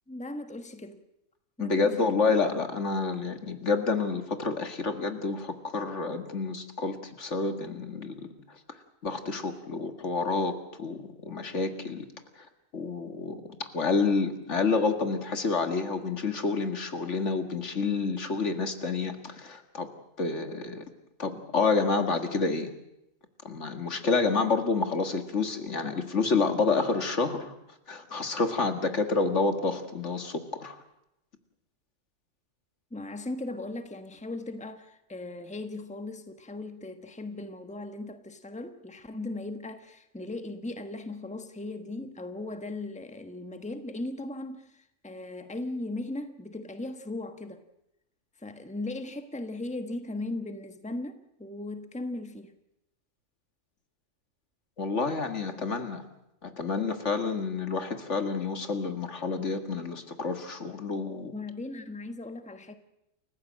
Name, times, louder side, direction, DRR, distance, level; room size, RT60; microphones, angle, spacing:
voice 1, 0.1-1.0 1.6-2.2 32.9-47.6 48.4-52.5 61.3-62.7, left 2 dB, 5° left, 1.3 m, -38 dB
voice 2, 1.6-8.3 9.0-12.1 12.7-19.9 20.2-20.8 21.2-22.7 23.4-27.5 27.9-30.8 54.8-56.0 56.4-61.3, left 4 dB, 65° left, 2.2 m, -29 dB
29.0 x 15.0 x 7.6 m
omnidirectional pair, 1.3 m